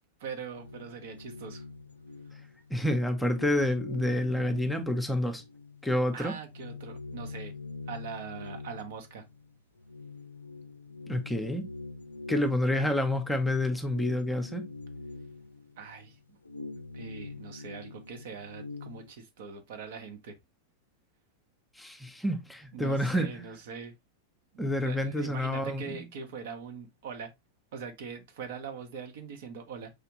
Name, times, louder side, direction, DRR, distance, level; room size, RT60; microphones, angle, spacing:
voice 1, 0.2-1.7 6.1-7.5 7.9-9.2 15.8-16.4 16.9-20.4 22.7-23.9 24.5-27.3 27.7-29.9, right 6 dB, 55° right, 0.9 m, -42 dB
sound 1, 0.5-2.8 3.1-5.9 6.2-19.1, left 3 dB, 80° left, 0.4 m, -44 dB
voice 2, 2.7-5.4 5.8-6.3 11.1-11.6 12.3-14.6 21.8-23.5 24.6-26.0, left 1 dB, 5° left, 0.8 m, -28 dB
4.9 x 3.4 x 2.9 m
figure-of-eight pair, 90°, 0 cm